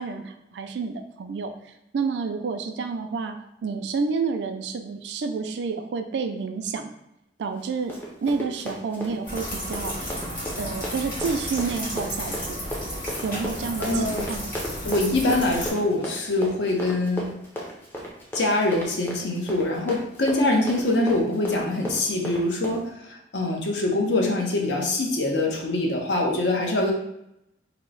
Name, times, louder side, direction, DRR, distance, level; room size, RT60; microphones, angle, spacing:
voice 1, 0.0-1.5 1.9-6.9 7.4-8.0 8.2-10.2 10.6-12.6 13.2-14.5, right 5 dB, 75° right, 6 dB, 0.3 m, -29 dB
Run, 7.5-22.8, equal, 10° left, 0.5 m, -35 dB
sound 1, 9.2-15.7, equal, 50° left, 1.5 m, -33 dB
voice 2, 13.8-14.2 14.8-17.3 18.3-26.9, left 2 dB, 70° left, 0 dB, 0.7 m, -24 dB
2.9 x 2.0 x 3.8 m, 0.81 s
head